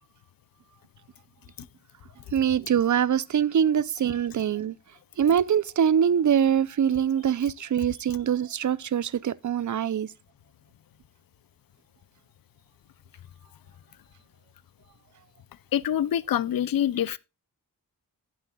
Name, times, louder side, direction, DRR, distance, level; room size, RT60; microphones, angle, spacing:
voice 1, 2.3-4.8 5.2-10.1, right 8 dB, 55° right, 0.5 m, -24 dB
voice 2, 15.7-17.2, left 10 dB, 75° left, 0.5 m, -25 dB
17.5 x 7.5 x 2.3 m
wide cardioid pair, 95°, 35 cm